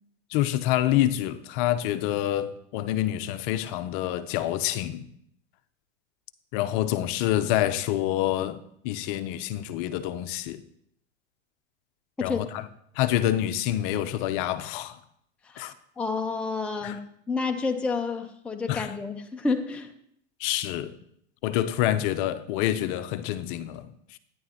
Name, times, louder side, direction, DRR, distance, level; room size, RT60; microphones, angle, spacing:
voice 1, 0.3-5.1 6.5-10.6 12.2-12.7 13.0-15.0 15.6-15.7 16.8-17.0 18.7-18.9 20.4-20.9 21.4-24.2, left 13 dB, 45° left, 0.7 m, -27 dB
voice 2, 15.4-19.9, left 4 dB, 5° left, 0.5 m, -30 dB
12.5 x 9.8 x 2.9 m
hypercardioid pair, 115°, 35 cm